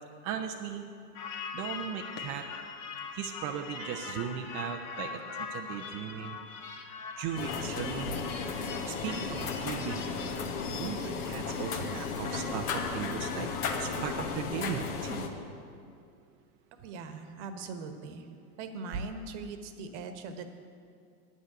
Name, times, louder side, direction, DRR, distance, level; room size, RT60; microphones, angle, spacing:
voice 1, 0.2-0.9 1.5-2.5 3.1-6.4 7.2-8.2 8.8-13.5 13.8-15.3, right 8 dB, 25° right, 3 dB, 0.4 m, -37 dB
sound 1, 1.1-14.2, left 6 dB, 45° left, 1.5 m, -42 dB
sound 2, 7.4-15.3, left 5 dB, 70° left, 1.5 m, -35 dB
voice 2, 16.8-18.3 18.6-20.5, right 4 dB, 50° right, 8 dB, 1.2 m, -41 dB
9.6 x 6.7 x 8.8 m, 2.3 s
hypercardioid pair, 120°, 47 cm